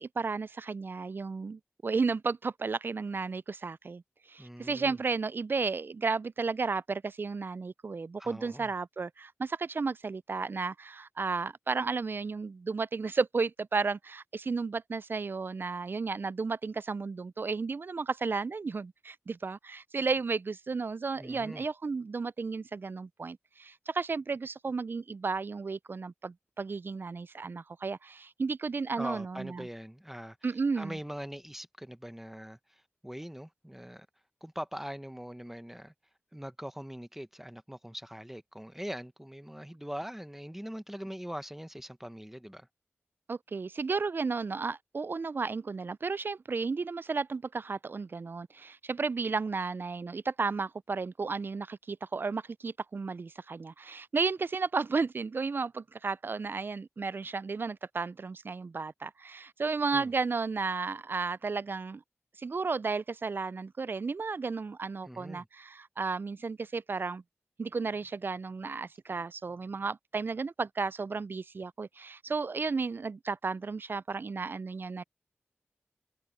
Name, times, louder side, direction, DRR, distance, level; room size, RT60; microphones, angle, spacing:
voice 1, 0.0-4.0 4.3-29.7 30.4-31.0 43.3-62.0 62.4-67.2 67.6-75.0, right 4 dB, 55° right, 0.3 m, -33 dB
voice 2, 4.4-5.0 8.2-8.7 21.2-21.7 29.0-30.4 30.8-34.1 34.4-35.9 36.3-42.7 59.9-60.1 65.0-65.5, equal, 5° right, 0.9 m, -42 dB
wide cardioid pair, 65°, 4 cm